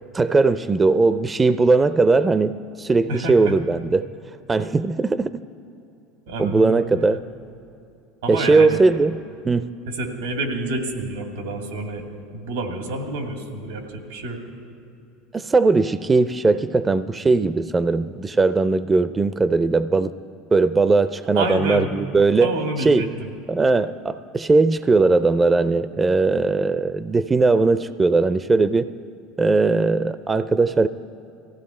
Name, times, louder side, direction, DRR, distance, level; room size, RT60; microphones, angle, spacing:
voice 1, 0.1-4.1 4.5-5.3 6.4-7.2 8.3-9.2 9.5-9.7 15.3-20.1 20.5-22.5 22.8-23.1 23.5-28.9 29.4-30.9, right 3 dB, 20° right, 14 dB, 0.4 m, -19 dB
voice 2, 3.1-3.6 6.3-6.8 8.2-8.8 9.9-12.0 12.3-14.4 21.4-21.9 22.4-23.3, right 2 dB, 90° right, 3 dB, 2.1 m, -28 dB
18.5 x 15.0 x 4.3 m, 2.7 s
hypercardioid pair, 85°, 0 cm